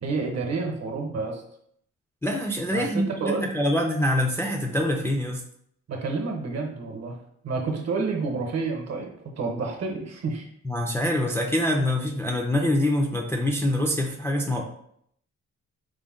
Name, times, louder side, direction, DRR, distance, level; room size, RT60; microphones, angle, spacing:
voice 1, 0.0-1.4 2.7-3.5 5.9-7.2 7.4-10.5, right 4 dB, 55° right, 2 dB, 0.9 m, -29 dB
voice 2, 2.2-5.4 10.6-14.6, left 1 dB, 10° left, 0 dB, 0.3 m, -25 dB
5.0 x 2.1 x 3.6 m, 0.69 s
wide cardioid pair, 140°, 30 cm